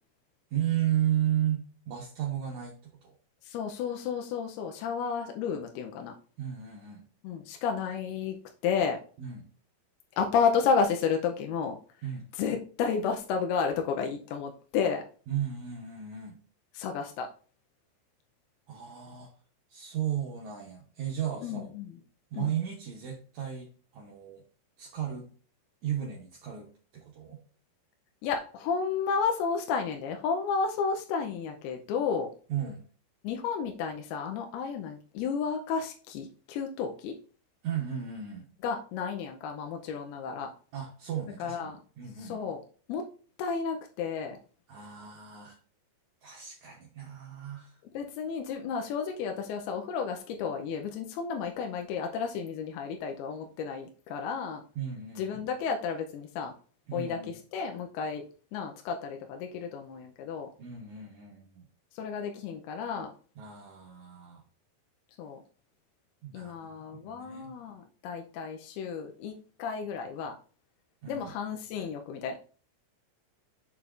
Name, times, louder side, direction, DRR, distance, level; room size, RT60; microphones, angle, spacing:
voice 1, 0.5-3.1 6.4-7.0 9.2-9.4 12.0-12.3 15.3-16.4 18.7-19.3 19.7-21.7 22.3-24.4 24.8-25.3 25.8-27.4 32.5-32.8 37.6-38.5 40.7-42.4 44.7-45.6 46.2-47.8 54.7-55.5 56.9-57.3 60.6-61.7 63.4-64.4 66.2-67.5 71.0-71.3, right 10 dB, 75° right, -1 dB, 1.7 m, -34 dB
voice 2, 3.4-6.2 7.2-8.4 8.6-9.0 10.2-11.8 12.4-15.0 16.7-17.3 21.4-22.0 22.3-22.5 28.2-32.3 33.2-37.1 38.6-40.5 41.4-41.8 42.2-42.6 42.9-43.0 43.4-44.4 47.9-54.6 55.2-56.5 56.9-58.2 58.5-60.5 61.9-63.1 65.2-65.4 66.3-70.4 71.1-72.4, left 6 dB, 85° left, 3 dB, 2.6 m, -32 dB
6.7 x 6.7 x 2.5 m, 0.41 s
omnidirectional pair, 4.4 m